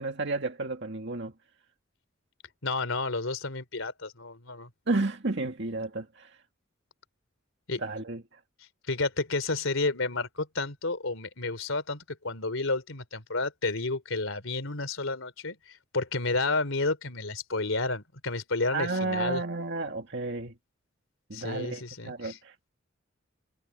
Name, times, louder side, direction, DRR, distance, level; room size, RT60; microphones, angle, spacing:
voice 1, 0.0-1.3 4.9-6.4 7.8-8.4 18.7-20.5 21.3-22.7, right 3 dB, 60° right, 2.1 m, -32 dB
voice 2, 2.6-4.7 7.7-7.8 8.9-19.4 21.3-22.4, left 3 dB, 85° left, 3.3 m, -31 dB
head